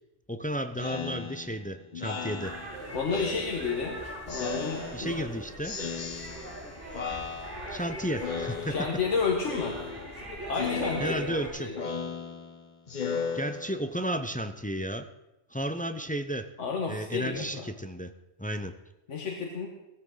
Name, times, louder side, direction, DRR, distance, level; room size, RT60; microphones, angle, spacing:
voice 1, 0.3-2.6 4.9-5.9 7.7-8.9 11.0-11.7 13.3-15.1 15.5-16.5 16.9-18.1 18.4-18.7, equal, 10° left, 9 dB, 0.4 m, -33 dB
Speech synthesizer, 0.8-3.9 4.3-5.3 5.6-6.7 6.9-7.9 8.2-9.1 9.4-10.2 10.5-14.1, left 6 dB, 40° left, 1.1 m, -37 dB
sound 1, 2.4-11.5, right 1 dB, 75° right, 6.8 m, -40 dB
voice 2, 2.9-4.0 4.3-5.2 8.7-9.8 10.5-11.2 11.6-11.7 16.6-17.7 19.1-19.7, left 5 dB, 80° left, 1 dB, 1.8 m, -31 dB
17.0 x 14.0 x 3.9 m, 0.97 s
omnidirectional pair, 1.2 m